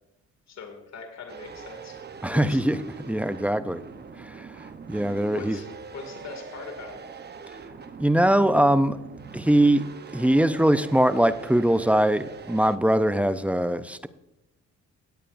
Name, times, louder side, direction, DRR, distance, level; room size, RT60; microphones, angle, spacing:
voice 1, 0.5-2.0 2.3-2.6 5.3-7.0, left 5 dB, 60° left, 4 dB, 2.3 m, -41 dB
sound 1, 1.3-12.8, right 5 dB, 35° right, 0.8 m, -42 dB
voice 2, 2.2-3.8 4.2-5.6 8.0-9.0 9.3-9.8 10.1-14.1, right 1 dB, 5° right, 13 dB, 0.4 m, -22 dB
17.5 x 8.9 x 2.5 m, 0.93 s
cardioid pair, 90°, 30 cm